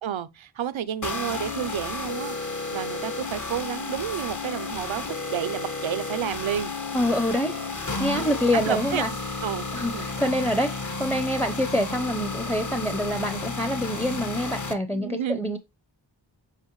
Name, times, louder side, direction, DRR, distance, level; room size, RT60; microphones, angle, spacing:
voice 1, 0.0-6.7 8.1-9.1 9.4-10.1 14.9-15.4, right 9 dB, 85° right, 0.7 m, -31 dB
sound 1, 1.0-14.7, left 3 dB, 40° left, 1.1 m, -32 dB
voice 2, 6.9-7.6 8.0-9.1 9.7-15.6, left 1 dB, 5° left, 0.7 m, -26 dB
8.2 x 4.4 x 3.1 m
wide cardioid pair, 70°, 46 cm